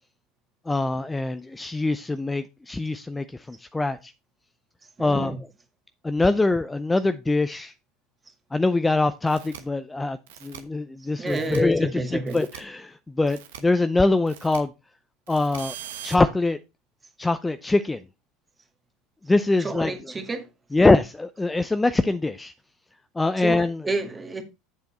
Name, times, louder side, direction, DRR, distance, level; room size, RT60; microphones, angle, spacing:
voice 1, 0.7-4.1 5.0-5.3 6.0-7.7 8.5-14.7 15.3-15.8 16.0-16.6 17.2-18.0 19.3-19.9 20.7-22.5 23.2-23.8, left 2 dB, 10° left, 0.5 m, -23 dB
voice 2, 5.0-5.4 11.0-12.4 19.6-20.5 23.4-24.4, right 3 dB, 20° right, 1.8 m, -30 dB
sound 1, 9.3-9.6 10.3-10.6 11.3-11.6 12.3-12.6 13.3-13.6 14.3-14.6 15.3-16.2, right 10 dB, 70° right, 1.1 m, -40 dB
7.9 x 6.9 x 4.2 m
figure-of-eight pair, 75°, 0 cm